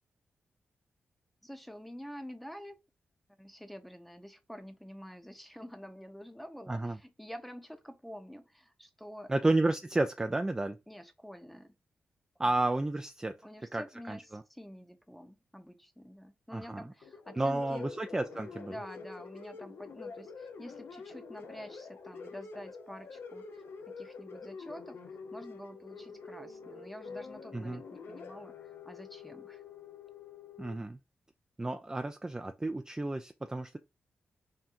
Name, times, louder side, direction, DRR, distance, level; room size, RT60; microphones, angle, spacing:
voice 1, 1.4-2.8 3.4-9.3 10.9-11.8 13.4-17.9 18.7-29.6, equal, ahead, 0.8 m, -48 dB
voice 2, 9.3-10.8 12.4-13.4 13.7-14.4 16.5-16.8 17.3-18.7 27.5-27.8 30.6-31.0 31.6-33.8, right 2 dB, 15° right, 0.4 m, -31 dB
sound 1, 17.0-30.8, left 4 dB, 80° left, 0.6 m, -46 dB
3.7 x 2.2 x 4.3 m
cardioid pair, 60°, 4 cm